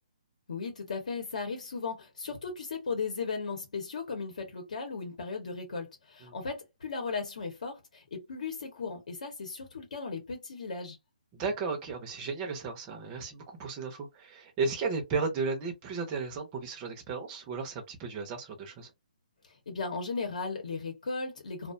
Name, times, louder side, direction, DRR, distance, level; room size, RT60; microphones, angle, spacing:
voice 1, 0.5-11.0 19.7-21.7, left 4 dB, 60° left, 0.9 m, -36 dB
voice 2, 11.3-18.9, right 4 dB, 15° right, 0.5 m, -34 dB
2.3 x 2.1 x 2.5 m
hypercardioid pair, 175°, 4 cm